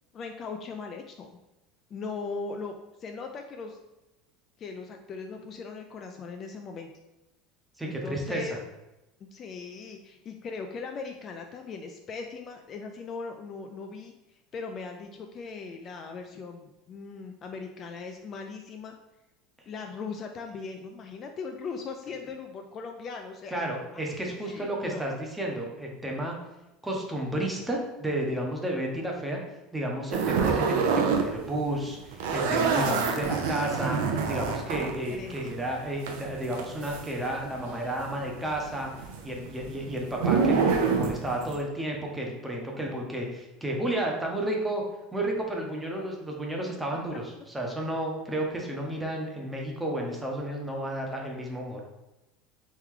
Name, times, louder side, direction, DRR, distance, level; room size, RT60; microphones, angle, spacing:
voice 1, 0.1-1.4 1.9-2.7 3.0-3.8 4.6-6.9 7.8-8.6 9.3-18.9 19.7-23.6 23.9-24.0 24.4-25.1 34.0-34.3 35.1-35.4, left 4 dB, 30° left, 4 dB, 0.3 m, -39 dB
voice 2, 7.8-8.6 23.5-26.4 26.8-29.4 29.7-38.9 39.2-44.8 45.1-51.8, right 1 dB, 5° right, -1 dB, 0.7 m, -32 dB
sound 1, 30.1-31.3 31.6-37.7 38.0-41.6, right 5 dB, 85° right, 0.6 m, -27 dB
3.4 x 3.1 x 3.7 m, 0.98 s
supercardioid pair, 145°, 0 cm